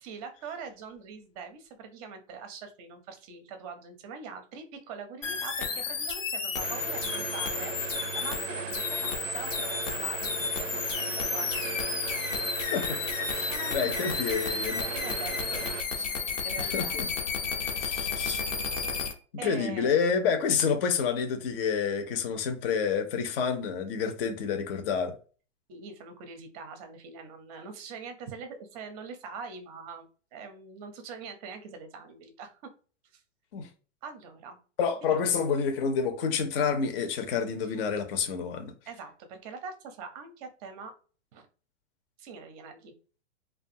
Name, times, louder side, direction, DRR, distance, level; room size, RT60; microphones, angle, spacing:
voice 1, 0.0-11.8 13.5-14.2 14.8-15.7 16.0-16.1 16.4-16.9 19.4-20.0 25.7-30.1 30.3-32.6 33.1-33.2 34.0-34.6 35.1-35.2 37.6-37.7 38.9-40.9 41.3-41.5 42.2-42.9, right 5 dB, 30° right, 0.5 m, -43 dB
sound 1, 5.2-19.1, left 5 dB, 90° left, 0.8 m, -32 dB
sound 2, 6.6-15.8, right 8 dB, 90° right, 0.5 m, -38 dB
voice 2, 13.3-14.8 16.6-17.1 17.6-18.4 19.4-25.2 33.5-33.7 34.8-38.7, left 6 dB, 50° left, 0.6 m, -28 dB
2.5 x 2.3 x 2.5 m
hypercardioid pair, 140°, 37 cm